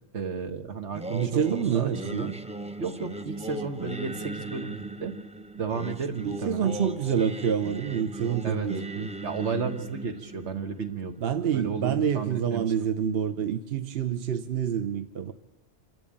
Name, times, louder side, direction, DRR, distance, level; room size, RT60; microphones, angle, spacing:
voice 1, 0.1-2.3 2.8-5.1 5.6-6.7 8.4-8.8 9.2-11.1 11.5-12.7, right 5 dB, 80° right, 7 dB, 1.7 m, -33 dB
Singing, 0.9-12.0, right 1 dB, 10° right, 0.5 m, -39 dB
voice 2, 1.1-2.3 6.2-9.1 11.2-15.3, right 8 dB, 60° right, 8 dB, 1.1 m, -27 dB
26.0 x 12.5 x 8.8 m, 1.1 s
omnidirectional pair, 1.2 m